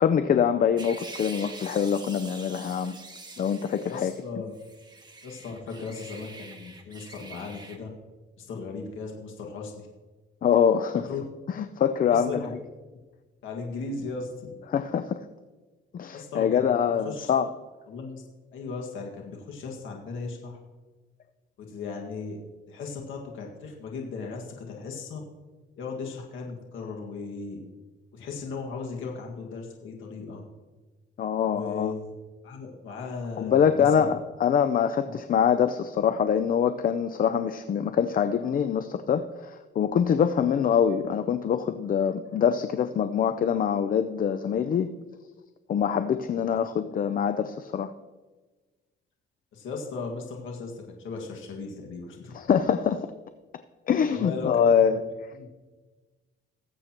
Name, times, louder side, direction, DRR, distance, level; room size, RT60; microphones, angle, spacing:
voice 1, 0.0-3.0 3.4-4.1 10.4-11.0 11.6-12.4 14.7-15.2 15.9-17.5 31.2-31.9 33.4-44.9 45.7-47.9 52.3-53.1 53.9-55.0, left 7 dB, 45° left, 11 dB, 0.5 m, -24 dB
sound 1, 0.8-4.2 4.5-7.8, right 3 dB, 20° right, 1.6 m, -45 dB
voice 2, 3.9-4.5 5.2-7.9 8.4-9.9 10.9-11.2 12.1-12.5 13.4-14.5 16.1-17.3 17.9-18.2 18.5-20.6 21.6-22.4 22.7-25.2 25.8-27.6 28.1-30.4 31.5-32.1 32.4-34.1 35.1-35.2 46.5-46.6 49.5-52.3 54.1-55.5, left 4 dB, 80° left, 0 dB, 1.9 m, -37 dB
20.0 x 8.1 x 3.0 m, 1.3 s
cardioid pair, 90°, 20 cm